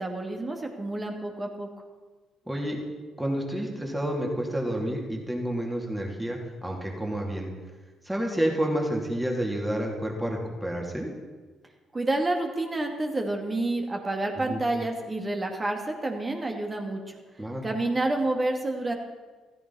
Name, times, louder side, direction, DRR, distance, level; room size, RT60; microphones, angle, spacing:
voice 1, 0.0-1.7 11.9-17.0 17.6-18.9, right 2 dB, 25° right, 3 dB, 2.4 m, -29 dB
voice 2, 2.5-2.8 3.2-7.5 8.0-11.1 14.4-14.6 17.4-17.6, equal, 10° right, 0 dB, 3.2 m, -29 dB
15.5 x 14.5 x 4.3 m, 1.3 s
figure-of-eight pair, 45°, 0 cm